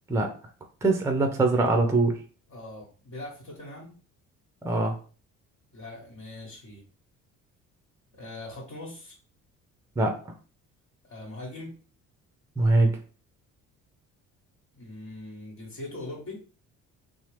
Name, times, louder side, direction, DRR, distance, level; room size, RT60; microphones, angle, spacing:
voice 1, 0.8-2.2 4.6-5.0 10.0-10.2 12.6-13.0, right 2 dB, 5° right, 4 dB, 0.6 m, -23 dB
voice 2, 2.5-3.9 5.7-6.8 8.1-9.2 11.0-11.8 14.8-16.4, left 2 dB, 45° left, -4 dB, 1.4 m, -41 dB
2.8 x 2.0 x 3.2 m, 0.37 s
hypercardioid pair, 55°, 39 cm